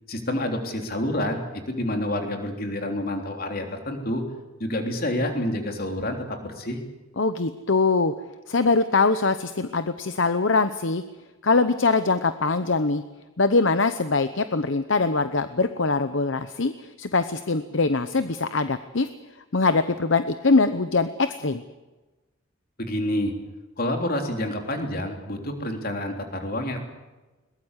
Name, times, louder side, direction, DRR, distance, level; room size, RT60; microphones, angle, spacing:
voice 1, 0.1-4.2 4.6-6.8 22.8-23.3 23.8-26.8, left 1 dB, 45° left, 3 dB, 3.5 m, -28 dB
voice 2, 7.2-8.1 8.5-11.0 11.4-13.0 13.4-16.7 17.0-19.1 19.5-21.6, left 3 dB, 65° left, 10 dB, 0.9 m, -22 dB
22.0 x 20.5 x 8.2 m, 1.2 s
head